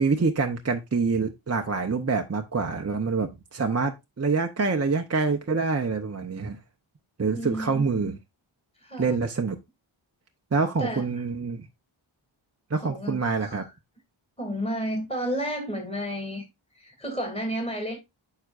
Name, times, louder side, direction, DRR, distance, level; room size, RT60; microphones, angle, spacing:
voice 1, 0.0-6.6 7.2-8.2 9.0-9.6 10.5-11.7 12.7-13.6, right 4 dB, 30° right, 0.7 m, -26 dB
voice 2, 7.3-8.2 8.8-9.2 10.8-11.0 12.8-13.7 14.4-16.5 16.7-18.0, equal, 10° left, 2.7 m, -32 dB
9.3 x 5.7 x 2.5 m
wide cardioid pair, 80°, 49 cm